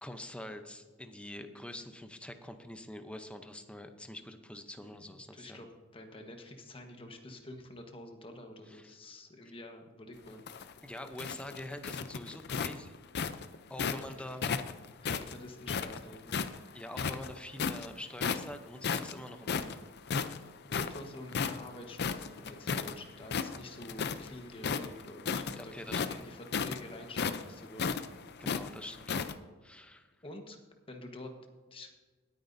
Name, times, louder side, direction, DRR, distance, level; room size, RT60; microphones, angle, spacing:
voice 1, 0.0-5.7 8.7-8.9 10.8-13.0 13.7-14.5 16.5-19.8 25.6-26.0 28.4-29.3 29.6-30.1, left 1 dB, 5° left, 7 dB, 0.7 m, -45 dB
voice 2, 4.8-5.7 5.9-10.4 13.8-13.9 15.0-16.4 20.7-28.0 30.2-30.6 30.9-31.3 31.7-31.9, left 1 dB, 25° left, 4 dB, 1.3 m, -48 dB
sound 1, 10.3-14.0 14.4-16.6 16.9-17.9 18.2-18.6 18.8-22.9 23.2-24.3 24.6-29.3, left 6 dB, 50° left, 0.5 m, -34 dB
19.5 x 9.2 x 2.7 m, 1.4 s
head